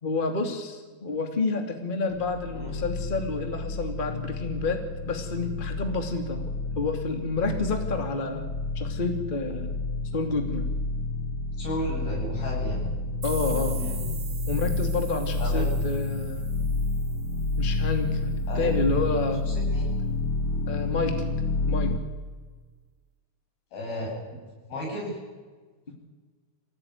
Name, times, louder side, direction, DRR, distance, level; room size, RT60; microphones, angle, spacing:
voice 1, 0.0-4.8 5.1-9.7 10.1-10.7 13.2-13.8 14.5-16.5 17.6-18.3 18.6-19.5 20.7-21.1 21.7-21.9, left 3 dB, 15° left, 5 dB, 2.3 m, -29 dB
sound 1, 2.1-22.0, left 3 dB, 45° left, 2.0 m, -29 dB
voice 2, 11.6-12.8 13.7-14.1 15.4-15.7 18.5-18.7 19.5-19.9 23.7-24.1 24.7-25.2, equal, 90° left, -2 dB, 9.8 m, -33 dB
sound 2, 13.2-17.9, right 7 dB, 45° right, 1.6 m, -43 dB
26.0 x 17.0 x 9.7 m, 1.4 s
omnidirectional pair, 4.2 m